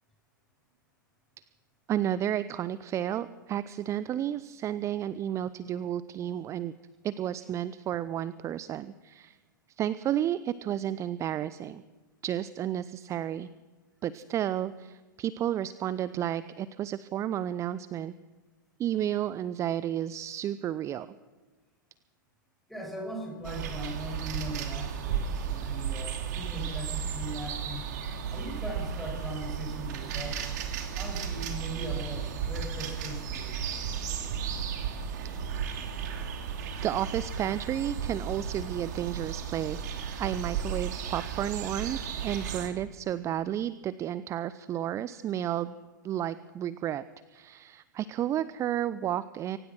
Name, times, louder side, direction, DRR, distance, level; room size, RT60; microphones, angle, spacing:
voice 1, 1.9-6.7 7.0-9.4 9.8-11.8 12.2-13.5 14.0-18.1 18.8-21.1 35.5-35.7 36.8-39.8 40.2-45.7 46.0-49.6, right 11 dB, 25° right, 16 dB, 0.6 m, -32 dB
voice 2, 22.7-27.9 28.3-30.4 30.9-33.6, right 1 dB, ahead, 1 dB, 7.4 m, -40 dB
sound 1, 23.4-42.7, right 7 dB, 55° right, 3.2 m, -34 dB
24.0 x 18.0 x 6.2 m, 1.2 s
figure-of-eight pair, 100°, 11 cm